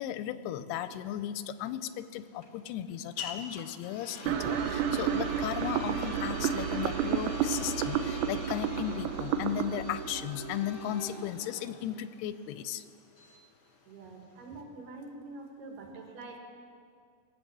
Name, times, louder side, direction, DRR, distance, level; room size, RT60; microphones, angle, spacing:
voice 1, 0.0-12.9, left 11 dB, 90° left, 13 dB, 2.6 m, -36 dB
sound 1, 0.8-14.6, left 3 dB, 40° left, 1.6 m, -44 dB
sound 2, 4.3-11.3, right 9 dB, 85° right, 2.6 m, -31 dB
voice 2, 13.9-16.4, right 3 dB, 65° right, 1 dB, 3.2 m, -45 dB
20.5 x 8.3 x 7.5 m, 2.2 s
omnidirectional pair, 4.5 m